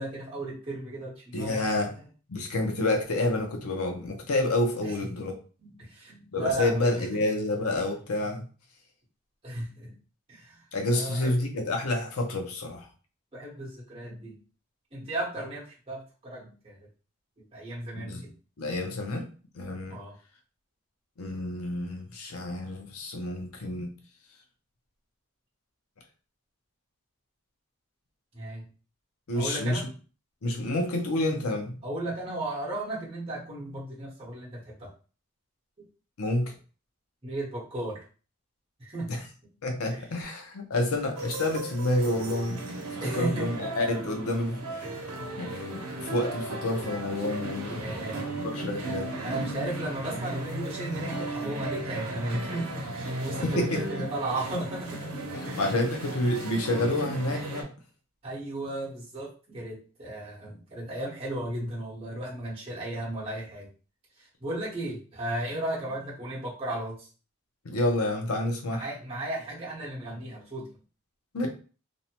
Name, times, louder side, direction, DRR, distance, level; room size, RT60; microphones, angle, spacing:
voice 1, 0.0-1.8 4.8-5.1 5.6-7.0 9.4-9.9 10.3-10.6 10.9-11.3 13.3-14.4 14.9-16.8 17.5-18.3 19.9-20.2 28.3-28.7 29.3-29.9 31.8-34.9 35.8-35.9 37.2-38.0 38.8-39.1 39.4-39.5 39.9-40.1 43.0-43.5 44.8-45.1 47.7-48.5 49.2-55.1 55.4-55.6 58.2-63.7 64.2-67.1 68.7-70.8, right 1 dB, 25° right, -6 dB, 1.0 m, -35 dB
voice 2, 1.3-1.9 2.3-5.3 6.3-8.4 10.7-12.9 17.9-18.2 18.6-19.3 19.5-20.0 21.2-23.9 29.3-29.8 30.4-31.8 36.2-36.6 39.1-39.2 39.6-42.6 43.0-44.9 45.4-47.9 48.4-49.1 53.4-53.8 55.5-57.7 67.6-68.9 71.3-71.5, left 1 dB, 80° left, 3 dB, 0.6 m, -29 dB
sound 1, 41.2-57.6, right 1 dB, 85° right, 0.8 m, -36 dB
2.6 x 2.1 x 2.8 m, 0.37 s
head